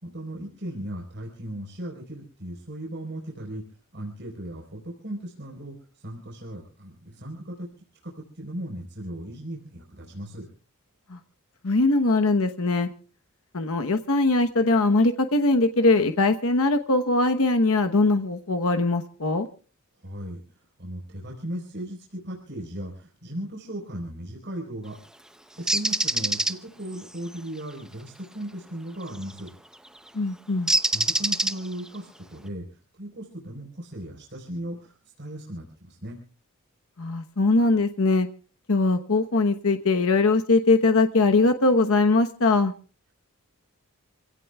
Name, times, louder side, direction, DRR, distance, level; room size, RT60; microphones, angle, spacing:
voice 1, 0.0-3.6 3.9-10.5 20.0-25.0 25.6-29.5 30.9-36.2, right 1 dB, 50° right, -1 dB, 4.2 m, -37 dB
voice 2, 11.6-12.9 13.5-19.5 30.1-30.7 37.0-38.3 38.7-42.7, left 3 dB, 70° left, 7 dB, 1.0 m, -21 dB
Bird, 25.7-26.5 29.2-29.4 30.7-31.9, right 1 dB, 5° right, 0.6 m, -24 dB
28.0 x 17.0 x 2.3 m, 0.36 s
head